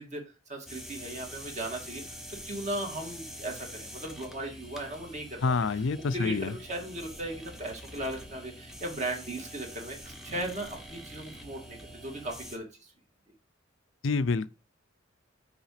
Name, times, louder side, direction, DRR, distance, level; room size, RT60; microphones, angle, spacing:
voice 1, 0.0-5.5 6.1-12.6, right 1 dB, 35° right, 2.0 m, -37 dB
sound 1, 0.7-12.6, equal, ahead, 1.0 m, -45 dB
voice 2, 5.4-6.5 14.0-14.5, left 4 dB, 70° left, 0.5 m, -27 dB
5.8 x 4.8 x 5.7 m
head